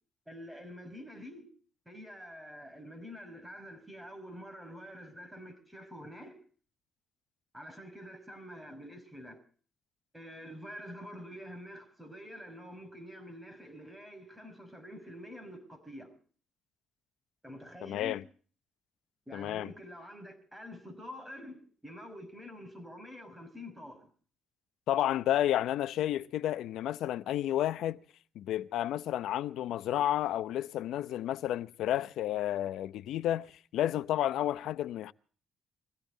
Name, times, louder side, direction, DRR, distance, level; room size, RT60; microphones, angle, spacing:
voice 1, 0.3-1.5 1.9-6.4 7.5-9.4 10.1-16.1 17.4-18.2 19.3-24.1, equal, 5° right, 5.7 m, -47 dB
voice 2, 17.8-18.2 19.3-19.7 24.9-28.0 28.4-33.5 33.7-35.1, left 12 dB, 80° left, 0.7 m, -31 dB
22.5 x 16.0 x 3.9 m
cardioid pair, 90°, 0 cm